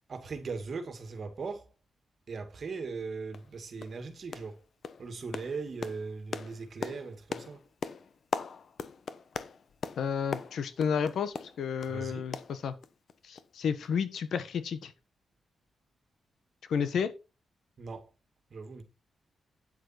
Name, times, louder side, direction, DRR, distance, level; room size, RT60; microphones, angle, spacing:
voice 1, 0.1-1.7 2.3-4.6 5.0-7.6 11.9-12.3 17.8-18.1 18.5-18.8, right 4 dB, 45° right, 2.1 m, -39 dB
sound 1, 2.8-2.9 3.3-3.5 3.8-4.0 4.3-4.6 4.8-12.0 12.3-13.1 13.4-13.5 13.8-13.9, left 6 dB, 55° left, 1.0 m, -40 dB
voice 2, 10.0-12.7 13.2-14.9 16.7-17.1, left 7 dB, 75° left, 1.4 m, -31 dB
9.2 x 8.1 x 4.4 m
cardioid pair, 110°, 0 cm